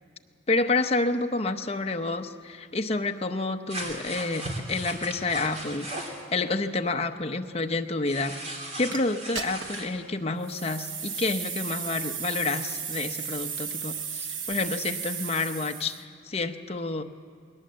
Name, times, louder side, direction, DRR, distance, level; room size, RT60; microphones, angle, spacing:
voice 1, 0.5-8.4 8.8-17.0, left 3 dB, 30° left, 6 dB, 0.8 m, -29 dB
sound 1, 3.7-6.2 8.0-9.9, right 1 dB, 35° right, 3.0 m, -37 dB
sound 2, 8.9-9.0 9.3-9.9 10.4-16.0, right 7 dB, 70° right, 1.2 m, -35 dB
21.0 x 18.5 x 7.6 m, 2.2 s
head